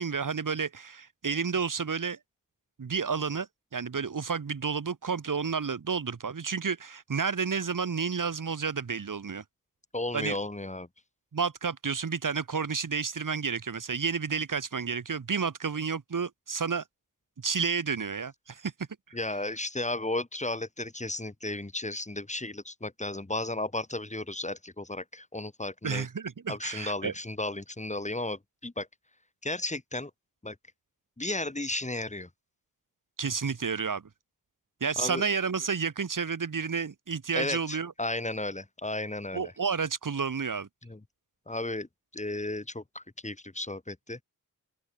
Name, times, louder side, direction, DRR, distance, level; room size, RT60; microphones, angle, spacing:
voice 1, 0.0-2.2 2.8-9.4 10.1-10.4 11.3-16.8 17.4-18.7 19.1-19.2 25.8-27.1 33.2-34.0 34.8-37.9 39.3-40.7, right 5 dB, 65° right, 7.0 m, -31 dB
voice 2, 9.9-10.9 19.1-26.1 26.5-28.9 29.4-30.1 30.4-30.6 31.2-32.3 35.0-35.2 37.3-39.5 40.8-41.0 41.5-41.9 42.1-44.2, left 2 dB, 20° left, 7.9 m, -34 dB
open air
wide cardioid pair, 105°, 34 cm